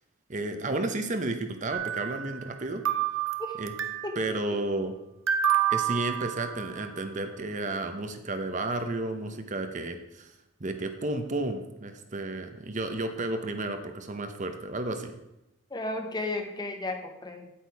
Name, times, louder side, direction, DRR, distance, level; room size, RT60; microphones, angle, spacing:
voice 1, 0.3-2.8 3.6-3.7 4.2-4.9 5.7-10.3 10.6-15.2, right 2 dB, 40° right, 7 dB, 0.9 m, -32 dB
sound 1, 1.7-2.6 2.8-4.3 5.3-6.9, right 10 dB, 75° right, 0.8 m, -29 dB
voice 2, 4.0-4.6 15.7-17.5, left 2 dB, 20° left, 5 dB, 0.9 m, -34 dB
8.9 x 8.7 x 4.7 m, 0.90 s
head